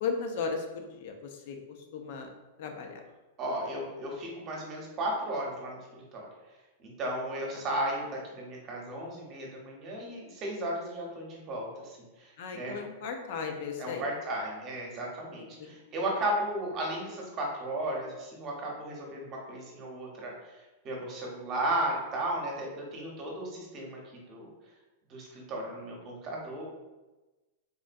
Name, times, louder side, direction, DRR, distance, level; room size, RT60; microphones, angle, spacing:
voice 1, 0.0-1.6 1.9-2.3 2.6-3.0 12.4-14.0 15.6-15.7, left 5 dB, 60° left, 4 dB, 0.5 m, -35 dB
voice 2, 3.4-6.3 6.8-12.8 13.8-24.0 24.3-24.5 25.1-26.6, right 1 dB, 35° right, -2 dB, 0.9 m, -35 dB
3.6 x 2.1 x 2.6 m, 1.1 s
hypercardioid pair, 125°, 0 cm